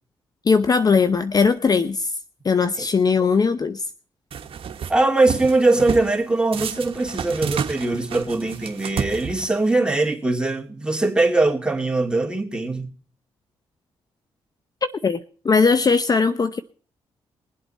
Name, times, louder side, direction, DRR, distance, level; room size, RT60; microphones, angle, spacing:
voice 1, 0.5-2.1 2.4-3.8 14.8-15.2 15.4-16.6, left 5 dB, 35° left, 0.7 m, -19 dB
sound 1, 4.3-4.9 5.3-6.1 6.5-9.7, right 7 dB, 60° right, 1.2 m, -30 dB
voice 2, 4.9-12.9, right 2 dB, 10° right, 2.7 m, -21 dB
21.5 x 8.1 x 4.4 m
supercardioid pair, 55°, 11 cm